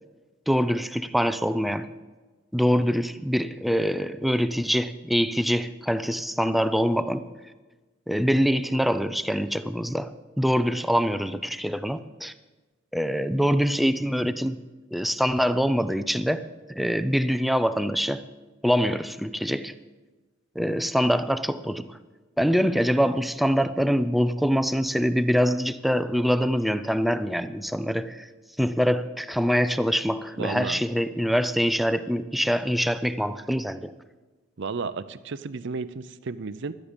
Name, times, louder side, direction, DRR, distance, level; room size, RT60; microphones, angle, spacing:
voice 1, 0.5-1.9 2.5-7.3 8.1-12.3 12.9-14.6 14.9-16.4 16.7-18.2 18.6-19.7 20.6-22.0 22.4-28.3 28.6-33.9, equal, ahead, 12 dB, 0.4 m, -24 dB
voice 2, 30.4-30.8 34.6-36.7, right 4 dB, 65° right, 14 dB, 0.6 m, -33 dB
17.0 x 12.0 x 5.2 m, 1.3 s
head